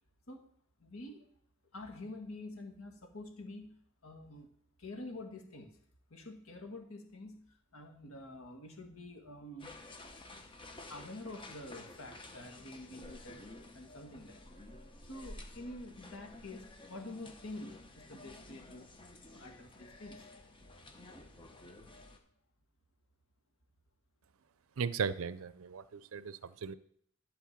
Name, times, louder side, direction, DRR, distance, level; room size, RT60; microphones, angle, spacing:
voice 1, 0.8-1.3 1.7-4.5 4.8-5.8 6.1-9.7 10.4-13.5 13.7-14.4 15.1-18.9 19.3-20.3, left 2 dB, 75° left, 3 dB, 1.9 m, -48 dB
sound 1, 9.6-22.2, left 2 dB, 25° left, 1.0 m, -52 dB
voice 2, 24.8-26.7, right 6 dB, 65° right, 15 dB, 0.5 m, -37 dB
11.5 x 4.4 x 7.3 m, 0.66 s
head